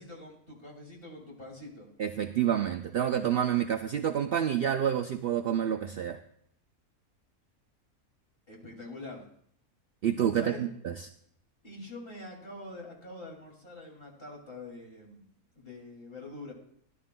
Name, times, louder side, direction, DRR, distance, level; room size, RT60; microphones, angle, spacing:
voice 1, 0.0-1.9 8.5-9.2 10.4-10.7 11.6-15.2 15.6-16.5, left 2 dB, 40° left, -1 dB, 2.6 m, -45 dB
voice 2, 2.0-6.2 10.0-11.1, right 9 dB, 80° right, 7 dB, 0.5 m, -28 dB
16.5 x 11.0 x 2.2 m, 0.67 s
omnidirectional pair, 1.5 m